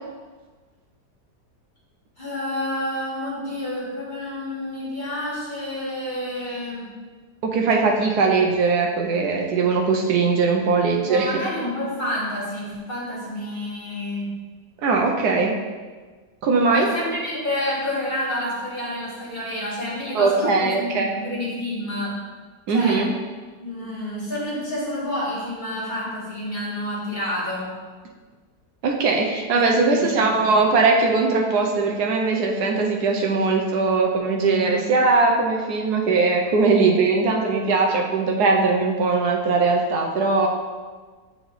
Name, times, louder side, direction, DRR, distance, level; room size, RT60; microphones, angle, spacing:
voice 1, 2.2-7.0 11.0-14.4 16.7-22.2 22.7-23.1 23.6-27.8 29.6-30.5 34.5-34.9, left 1 dB, 30° left, -6 dB, 1.7 m, -29 dB
voice 2, 7.4-11.3 14.8-15.5 16.4-16.9 20.1-21.1 22.7-23.1 28.8-40.5, right 4 dB, 75° right, 0 dB, 1.2 m, -20 dB
8.9 x 4.0 x 3.2 m, 1.4 s
omnidirectional pair, 1.8 m